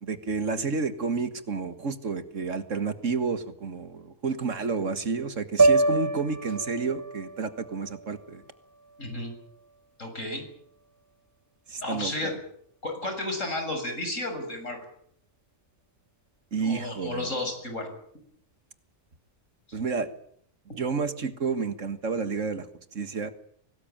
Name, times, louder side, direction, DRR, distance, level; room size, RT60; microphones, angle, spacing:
voice 1, 0.0-8.4 11.7-12.4 16.5-17.3 19.7-20.1 20.8-22.7 22.9-23.3, right 4 dB, 65° right, 11 dB, 2.0 m, -30 dB
sound 1, 5.6-9.9, right 3 dB, 15° right, 1.5 m, -27 dB
voice 2, 9.0-9.3 10.0-10.4 11.8-12.3 12.8-14.8 16.6-17.9 20.7-20.8, left 2 dB, 65° left, 5 dB, 7.1 m, -32 dB
24.0 x 19.0 x 9.0 m, 0.67 s
omnidirectional pair, 1.4 m